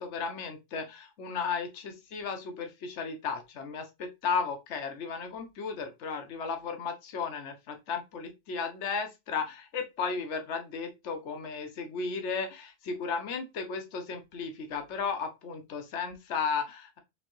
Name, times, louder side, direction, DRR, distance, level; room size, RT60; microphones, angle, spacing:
voice 1, 0.0-17.0, left 5 dB, 70° left, 6 dB, 1.2 m, -34 dB
5.1 x 3.2 x 3.0 m, 0.23 s
omnidirectional pair, 1.2 m